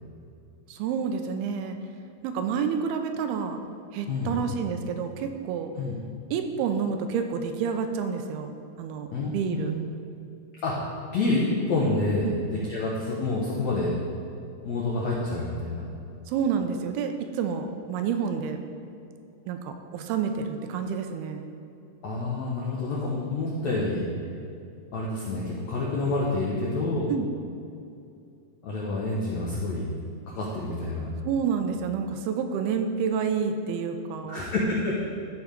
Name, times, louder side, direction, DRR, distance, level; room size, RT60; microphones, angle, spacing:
voice 1, 0.7-1.8 2.2-3.6 3.9-5.7 6.3-8.5 8.8-9.7 12.2-12.4 16.3-18.6 19.5-21.4 27.1-27.3 31.2-34.4, right 6 dB, 85° right, 6 dB, 2.5 m, -29 dB
voice 2, 4.1-4.4 5.8-5.9 9.1-9.7 10.6-10.8 11.1-12.3 12.7-13.9 14.6-15.9 22.0-24.0 24.9-27.1 28.6-29.9 30.3-31.1 34.2-35.0, left 2 dB, 80° left, -4 dB, 1.6 m, -28 dB
13.5 x 4.8 x 5.1 m, 2.5 s
omnidirectional pair, 4.6 m